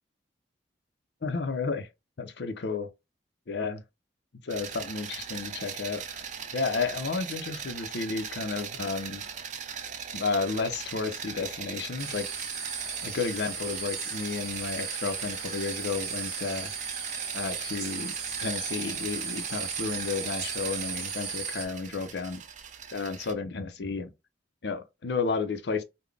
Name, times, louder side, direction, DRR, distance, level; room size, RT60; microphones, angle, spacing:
voice 1, 1.2-1.9 2.2-2.9 3.5-3.8 4.4-6.0 6.5-9.2 10.1-12.3 13.0-16.7 17.3-18.1 18.4-22.4 22.9-24.1 24.6-25.8, left 4 dB, 65° left, 0.6 m, -32 dB
sound 1, 4.5-23.3, right 7 dB, 40° right, 0.5 m, -40 dB
sound 2, 12.0-21.6, right 6 dB, 60° right, 1.3 m, -36 dB
3.8 x 2.1 x 3.3 m
head